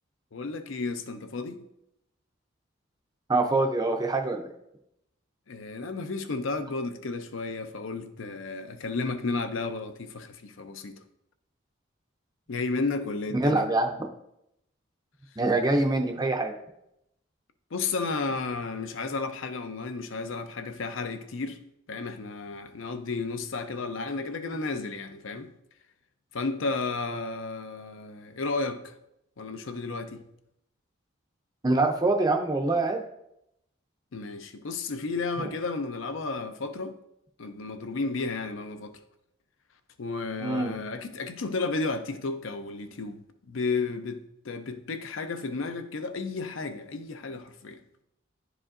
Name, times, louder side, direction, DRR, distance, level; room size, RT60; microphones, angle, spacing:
voice 1, 0.3-1.6 5.5-11.0 12.5-13.7 17.7-21.6 21.9-25.5 26.3-28.8 29.4-30.2 34.1-36.9 37.4-38.9 40.0-43.2 43.5-48.0, left 3 dB, 75° left, 0.6 m, -33 dB
voice 2, 3.3-4.5 13.3-13.9 15.4-16.5 31.6-33.0 35.4-35.5 40.4-40.7, right 2 dB, 20° right, 0.4 m, -24 dB
10.5 x 4.9 x 2.5 m
head